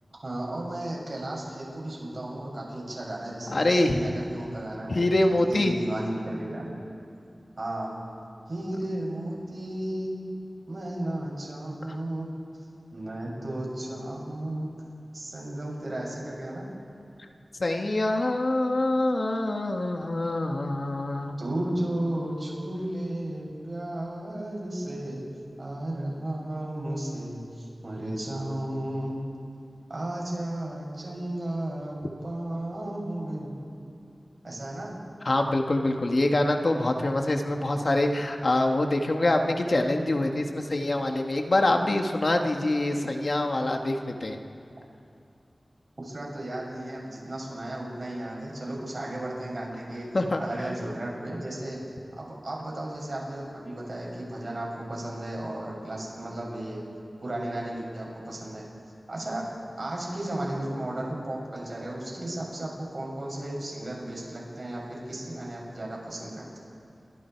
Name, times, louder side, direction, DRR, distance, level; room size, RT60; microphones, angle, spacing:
voice 1, 0.2-5.1 5.5-6.8 7.6-8.0 8.5-10.2 10.7-12.3 12.9-14.7 15.1-16.7 21.4-25.2 25.6-29.2 29.9-32.0 32.2-33.5 34.4-34.9 46.0-50.1 50.4-51.8 52.2-56.8 57.2-58.7 59.1-59.4 59.8-66.4, right 1 dB, 55° right, -3 dB, 7.6 m, -34 dB
voice 2, 3.5-4.0 4.9-5.7 17.6-21.4 35.2-44.4 50.1-50.4, left 2 dB, 60° left, 3 dB, 1.8 m, -25 dB
28.5 x 25.5 x 4.8 m, 2.5 s
wide cardioid pair, 60°, 0 cm